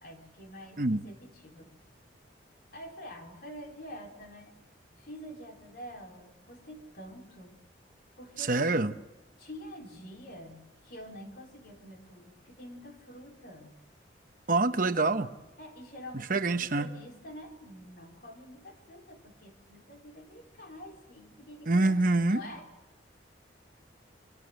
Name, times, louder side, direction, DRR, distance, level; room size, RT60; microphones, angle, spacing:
voice 1, 0.0-1.7 2.7-4.5 5.0-7.6 8.2-8.8 9.4-13.8 15.6-22.6, equal, 50° left, 2 dB, 4.4 m, -47 dB
voice 2, 8.4-8.9 14.5-15.3 16.3-16.9 21.7-22.4, right 2 dB, 45° right, 9 dB, 0.9 m, -26 dB
26.0 x 24.5 x 8.0 m, 1.0 s
head